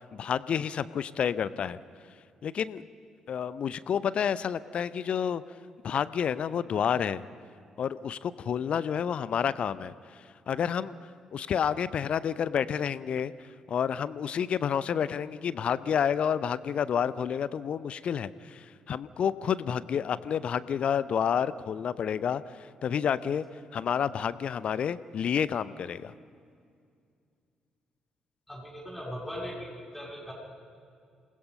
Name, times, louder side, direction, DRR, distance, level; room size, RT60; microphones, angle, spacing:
voice 1, 0.0-1.8 2.4-2.8 3.3-5.4 5.8-7.2 7.8-10.9 11.3-13.3 13.7-23.5 23.7-26.1, left 8 dB, 45° left, 17 dB, 0.6 m, -29 dB
voice 2, 28.5-30.3, equal, 5° left, -3 dB, 7.5 m, -39 dB
28.0 x 19.5 x 5.4 m, 2.3 s
figure-of-eight pair, 40°, 3 cm